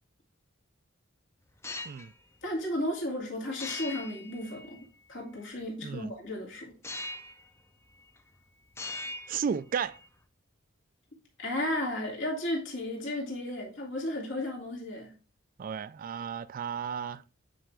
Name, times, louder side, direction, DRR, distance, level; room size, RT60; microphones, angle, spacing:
sound 1, 1.5-2.1 3.6-5.1 6.8-7.5 7.8-8.4 8.7-10.1, left 2 dB, 15° left, 0.5 m, -41 dB
voice 1, 2.4-6.7 11.4-15.1, left 1 dB, 65° left, 2.3 m, -34 dB
voice 2, 9.3-10.0 15.6-17.2, right 7 dB, 45° right, 0.3 m, -33 dB
8.9 x 4.9 x 3.3 m
head